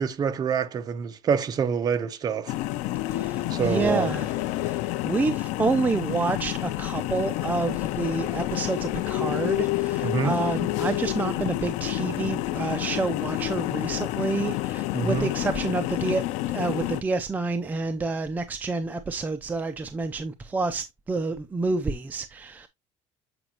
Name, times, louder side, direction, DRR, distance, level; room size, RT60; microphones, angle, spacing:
voice 1, 0.0-2.5 3.5-4.1 10.0-10.3 14.9-15.3, right 6 dB, 30° right, 0.8 m, -26 dB
sound 1, 2.5-17.0, left 16 dB, 70° left, 0.5 m, -29 dB
voice 2, 3.1-22.7, right 3 dB, 15° right, 0.5 m, -29 dB
7.8 x 5.0 x 2.9 m
cardioid pair, 155°, 12 cm